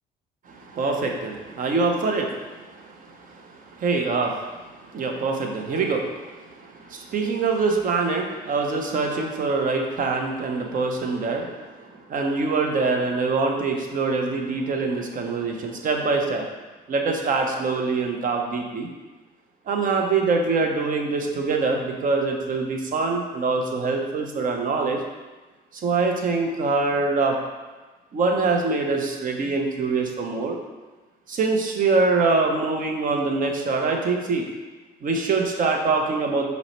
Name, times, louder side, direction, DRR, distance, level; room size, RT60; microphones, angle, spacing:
voice 1, 0.5-4.3 4.7-16.5 16.9-18.9 19.7-25.0 25.8-27.4 28.1-30.6 31.3-34.4 35.0-36.5, right 4 dB, 45° right, 2 dB, 0.7 m, -24 dB
5.3 x 2.1 x 4.3 m, 1.2 s
cardioid pair, 115°, 19 cm